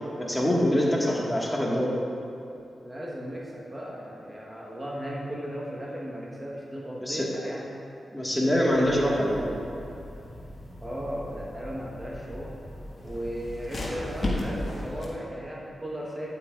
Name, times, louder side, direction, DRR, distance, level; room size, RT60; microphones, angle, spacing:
voice 1, 0.2-1.9 7.0-7.3 8.1-9.5, equal, 15° left, -3 dB, 1.7 m, -24 dB
voice 2, 2.8-7.7 10.8-12.6 13.0-16.3, equal, 20° right, -3 dB, 1.2 m, -36 dB
sound 1, 8.7-15.1, left 1 dB, 50° left, 1.7 m, -36 dB
9.9 x 8.8 x 2.5 m, 2.8 s
supercardioid pair, 45°, 0 cm